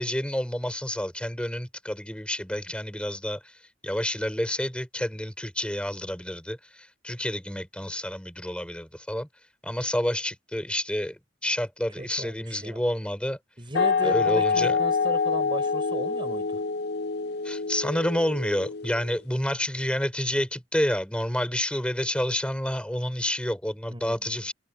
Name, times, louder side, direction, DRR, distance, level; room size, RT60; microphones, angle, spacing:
voice 1, 0.0-9.3 9.6-13.4 14.0-14.8 17.4-24.5, equal, 5° left, 4.0 m, -29 dB
voice 2, 12.0-12.8 13.6-16.6 23.9-24.2, right 1 dB, 25° right, 5.3 m, -37 dB
sound 1, 13.7-19.2, left 5 dB, 60° left, 0.5 m, -26 dB
head